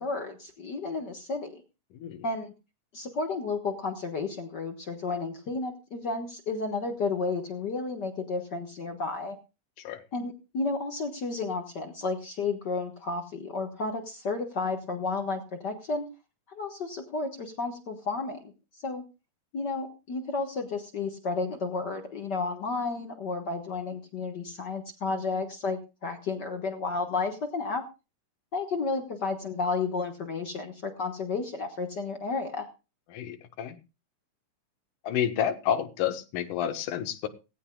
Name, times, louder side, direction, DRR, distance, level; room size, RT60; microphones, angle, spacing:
voice 1, 0.0-1.6 2.2-2.5 2.9-9.3 10.1-16.0 16.5-18.5 18.8-19.0 19.5-27.8 28.5-32.7, left 3 dB, 50° left, 4 dB, 1.3 m, -32 dB
voice 2, 1.9-2.2 9.8-10.0 33.1-33.8 35.0-37.3, left 9 dB, 70° left, 8 dB, 2.6 m, -30 dB
18.0 x 16.0 x 2.3 m, 0.30 s
omnidirectional pair, 3.8 m